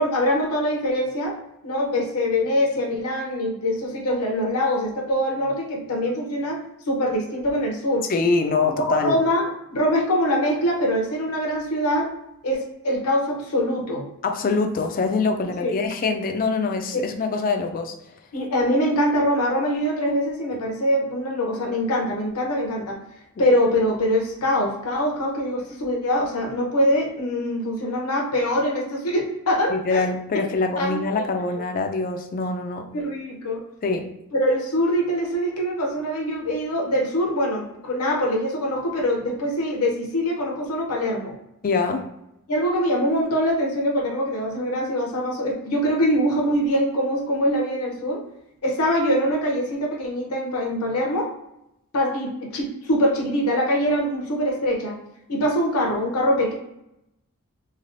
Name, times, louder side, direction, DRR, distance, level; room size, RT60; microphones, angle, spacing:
voice 1, 0.0-1.3 1.6-6.6 6.9-8.1 8.8-12.1 12.4-14.1 15.6-15.7 18.3-23.0 23.4-30.0 30.8-31.3 32.9-33.6 34.3-41.4 42.5-48.2 48.6-51.3 51.9-54.9 55.3-56.5, equal, 75° left, 0 dB, 0.7 m, -23 dB
voice 2, 8.1-9.2 14.2-17.9 29.7-32.9 33.8-34.1 41.6-42.1, left 4 dB, 40° left, 5 dB, 0.4 m, -24 dB
3.2 x 2.3 x 2.5 m, 0.85 s
head